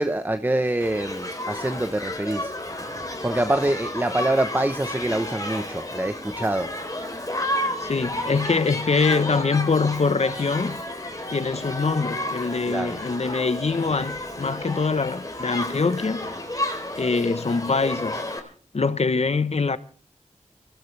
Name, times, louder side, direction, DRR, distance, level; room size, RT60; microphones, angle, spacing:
voice 1, 0.0-2.5 3.2-6.7 12.7-13.0, right 1 dB, 15° right, 1.0 m, -25 dB
Shout / Human group actions, 0.8-18.4, left 1 dB, 30° left, 3.6 m, -32 dB
voice 2, 7.8-10.8 11.3-16.3 16.9-18.2 18.7-19.8, left 4 dB, 60° left, 1.0 m, -24 dB
24.0 x 15.0 x 3.3 m
wide cardioid pair, 60°, 12 cm